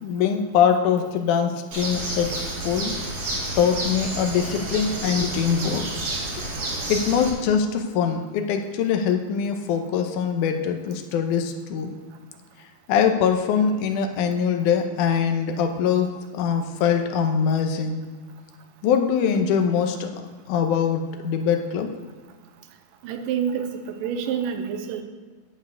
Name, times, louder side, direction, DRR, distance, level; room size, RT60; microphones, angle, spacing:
voice 1, 0.0-2.9 3.6-5.8 6.9-11.9 12.9-16.1 16.3-18.0 18.8-20.1 20.5-21.9, left 7 dB, 75° left, 5 dB, 1.9 m, -23 dB
Bird, 1.7-7.3, right 2 dB, 45° right, 2.6 m, -30 dB
voice 2, 23.0-25.0, right 7 dB, 75° right, 7 dB, 2.2 m, -28 dB
11.5 x 4.6 x 8.2 m, 1.4 s
omnidirectional pair, 4.4 m